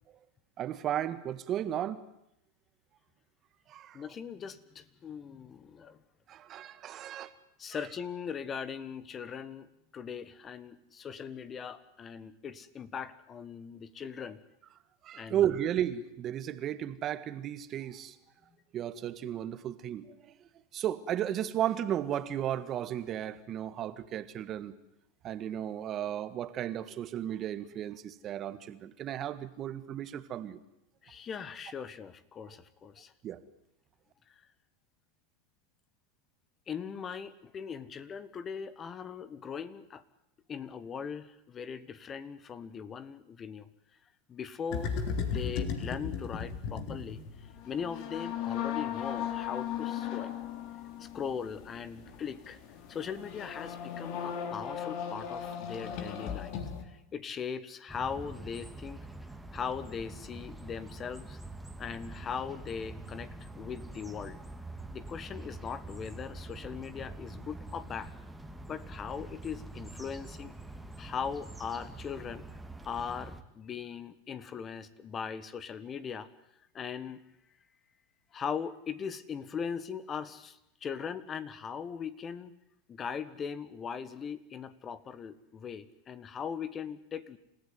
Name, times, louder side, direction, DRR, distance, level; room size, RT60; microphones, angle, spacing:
voice 1, 0.6-2.0 3.7-4.0 6.3-7.3 15.0-18.1 18.7-20.0 20.7-24.7 25.2-30.6 33.2-33.4, right 10 dB, 40° right, 13 dB, 1.7 m, -34 dB
voice 2, 3.9-6.0 7.6-14.4 15.1-15.6 31.0-33.1 34.3-34.4 36.7-40.0 40.5-43.7 44.3-50.3 51.0-52.6 52.9-59.0 59.5-61.4 61.8-64.4 64.9-68.1 68.7-70.5 71.0-72.5 72.8-76.3 76.7-77.2 78.3-82.5 82.9-87.4, left 7 dB, 30° left, 15 dB, 1.5 m, -40 dB
sound 1, 44.7-56.8, left 7 dB, 55° left, 3.6 m, -36 dB
sound 2, 57.9-73.4, right 2 dB, 5° right, 2.3 m, -45 dB
28.0 x 15.5 x 9.6 m, 0.81 s
hypercardioid pair, 100°, 0 cm